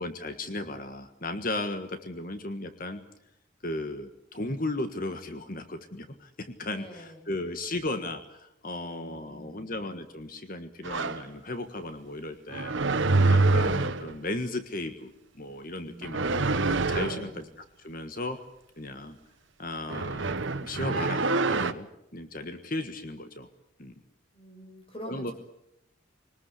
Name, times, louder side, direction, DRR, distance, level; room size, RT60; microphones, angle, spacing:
voice 1, 0.0-3.0 3.6-12.7 13.2-15.1 15.4-16.5 16.9-17.3 17.8-18.4 18.8-19.2 19.6-21.9 22.1-23.5 23.8-23.9 25.1-25.3, left 2 dB, 45° left, 8 dB, 1.5 m, -35 dB
voice 2, 6.7-7.3 8.7-9.7 15.7-16.2 17.0-17.4 24.3-25.3, right 1 dB, 25° left, 4 dB, 6.0 m, -46 dB
sound 1, 10.8-11.2 12.5-14.1 16.0-17.3 19.9-21.7, right 3 dB, 65° right, 1.2 m, -25 dB
23.0 x 20.0 x 8.4 m, 0.79 s
head